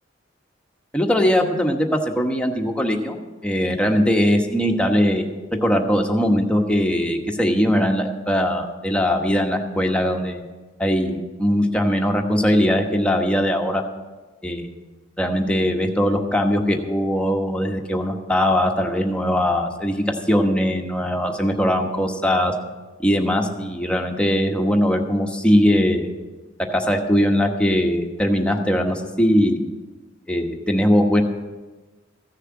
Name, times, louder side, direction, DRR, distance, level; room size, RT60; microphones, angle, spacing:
voice 1, 0.9-3.2 3.4-5.2 5.6-10.4 10.8-13.8 14.4-14.7 15.2-22.5 23.0-26.1 26.7-29.6 30.3-31.2, equal, 5° left, 2 dB, 1.2 m, -20 dB
15.0 x 6.6 x 7.5 m, 1.2 s
head